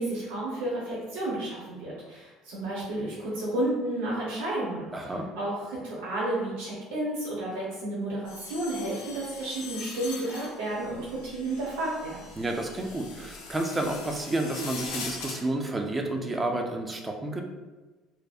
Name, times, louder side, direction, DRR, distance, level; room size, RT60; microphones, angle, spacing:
voice 1, 0.0-12.2, right 1 dB, 90° right, -6 dB, 0.7 m, -32 dB
voice 2, 4.9-5.3 12.4-17.4, right 2 dB, 20° right, 2 dB, 0.3 m, -30 dB
sound 1, 8.3-15.4, left 4 dB, 90° left, 0.5 m, -42 dB
2.6 x 2.1 x 2.3 m, 1.2 s
supercardioid pair, 110°, 0 cm